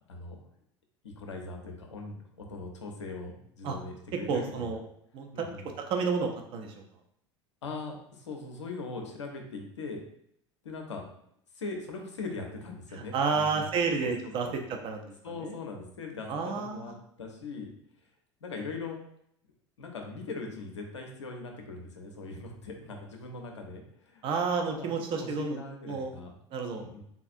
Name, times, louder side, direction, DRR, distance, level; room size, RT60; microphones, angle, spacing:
voice 1, 0.1-0.4 1.0-4.8 5.3-5.7 7.6-10.0 10.6-11.0 11.5-13.7 14.0-14.1 14.4-14.6 15.2-16.9 17.2-17.7 18.4-19.0 19.8-24.3 24.7-26.3 26.7-27.0, left 3 dB, 75° left, 2 dB, 0.6 m, -40 dB
voice 2, 4.3-4.8 5.1-6.8 12.9-15.1 15.4-15.6 16.3-16.9 24.2-25.6 25.9-26.1 26.5-26.9, right 5 dB, 35° right, 4 dB, 0.5 m, -31 dB
3.6 x 2.3 x 2.5 m, 0.72 s
figure-of-eight pair, 75°, 15 cm